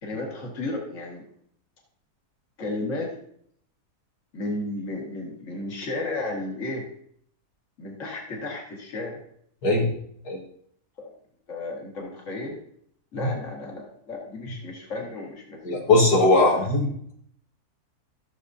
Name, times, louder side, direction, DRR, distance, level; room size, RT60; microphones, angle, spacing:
voice 1, 0.0-1.3 2.6-3.1 4.3-6.9 7.8-9.2 11.0-11.1 11.5-12.6 13.1-16.7, left 2 dB, 50° left, 0 dB, 2.1 m, -33 dB
voice 2, 15.6-16.9, left 2 dB, 80° left, -3 dB, 2.1 m, -19 dB
14.0 x 6.8 x 2.7 m, 0.67 s
omnidirectional pair, 1.7 m